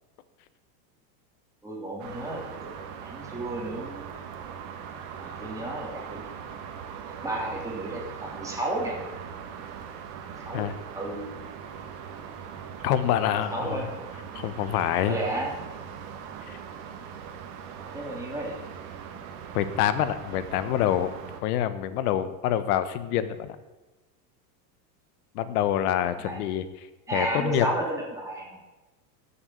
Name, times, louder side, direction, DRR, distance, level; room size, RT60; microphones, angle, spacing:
voice 1, 1.6-2.4 3.0-4.1 5.2-6.2 7.2-9.0 10.4-10.7 10.9-11.2 13.2-14.0 15.1-15.5 17.9-18.5 26.2-26.4 27.1-28.6, right 1 dB, 5° right, -3 dB, 3.2 m, -32 dB
sound 1, 2.0-21.4, right 7 dB, 55° right, 1.8 m, -40 dB
voice 2, 12.8-13.9 14.3-15.2 16.5-16.6 19.5-21.1 21.4-23.6 25.3-26.7 27.1-27.7, left 11 dB, 65° left, 13 dB, 1.2 m, -26 dB
14.0 x 7.2 x 6.4 m, 1.1 s
supercardioid pair, 140°, 49 cm